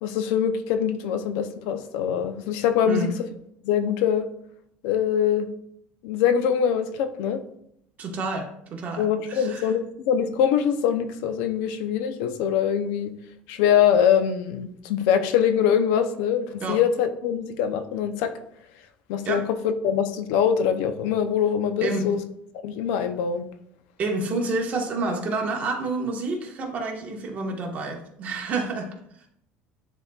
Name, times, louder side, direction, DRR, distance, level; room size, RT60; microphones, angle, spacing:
voice 1, 0.0-3.1 3.6-4.3 4.8-5.5 6.0-7.4 9.0-13.1 13.5-18.3 19.1-22.2 22.6-23.4, left 8 dB, 85° left, 9 dB, 0.6 m, -23 dB
voice 2, 8.0-9.7 16.6-16.8 19.2-19.4 21.8-22.1 24.0-28.9, right 3 dB, 35° right, 1 dB, 1.4 m, -29 dB
10.5 x 4.2 x 2.4 m, 0.72 s
cardioid pair, 140°, 4 cm